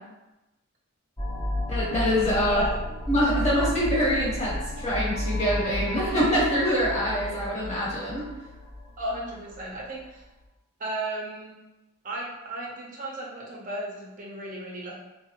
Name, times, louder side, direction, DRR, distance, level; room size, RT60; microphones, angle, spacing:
sound 1, 1.2-9.8, left 1 dB, 15° left, 0.4 m, -32 dB
voice 1, 1.7-2.6 3.1-8.2, equal, 30° left, -6 dB, 0.9 m, -25 dB
voice 2, 2.4-2.8 9.0-10.2 10.8-11.6 12.0-15.0, right 1 dB, 40° right, -4 dB, 0.5 m, -34 dB
3.4 x 2.0 x 2.8 m, 1.0 s
head